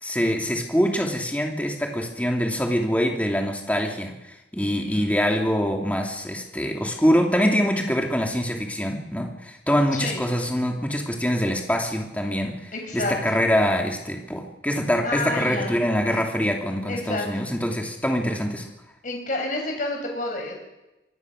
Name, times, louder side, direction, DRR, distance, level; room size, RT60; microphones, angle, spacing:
voice 1, 0.0-18.7, equal, 10° left, 2 dB, 2.7 m, -24 dB
voice 2, 12.7-13.3 15.0-15.7 16.9-17.2 19.0-20.6, left 2 dB, 45° left, 1 dB, 6.7 m, -29 dB
25.5 x 19.5 x 6.5 m, 0.98 s
head